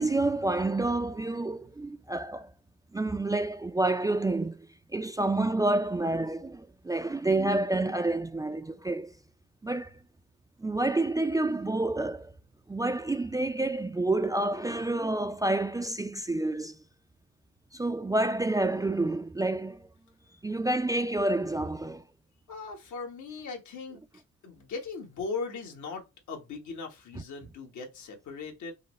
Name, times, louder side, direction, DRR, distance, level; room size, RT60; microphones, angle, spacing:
voice 1, 0.0-2.5 2.9-9.1 9.6-10.0 10.6-12.3 12.7-16.8 17.7-19.9 20.4-22.0, right 2 dB, 10° right, 0.4 m, -28 dB
voice 2, 22.5-28.7, left 4 dB, 75° left, 1.4 m, -39 dB
5.4 x 2.1 x 3.1 m
cardioid pair, 90°, 30 cm